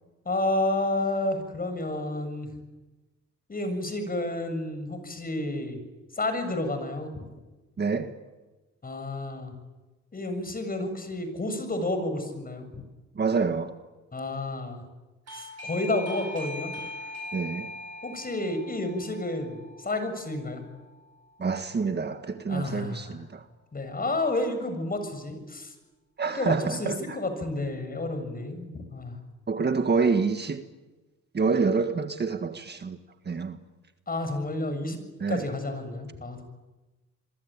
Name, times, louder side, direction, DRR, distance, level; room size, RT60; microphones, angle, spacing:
voice 1, 0.3-2.5 3.5-5.8 6.2-7.2 8.8-9.5 10.1-12.8 14.1-14.8 15.3-16.7 18.0-20.6 22.5-23.2 23.7-25.7 26.3-29.2 34.1-35.0 35.3-36.4, left 2 dB, 30° left, 7.2 m, -30 dB
voice 2, 7.8-8.2 13.2-13.8 17.3-17.7 21.4-23.5 26.2-27.2 29.5-30.6 31.3-33.0 33.3-33.6 35.2-35.5, right 4 dB, 35° right, 1.8 m, -27 dB
Doorbell, 15.3-21.7, left 2 dB, 55° right, 5.0 m, -41 dB
28.0 x 23.0 x 9.0 m
cardioid pair, 90°, 30 cm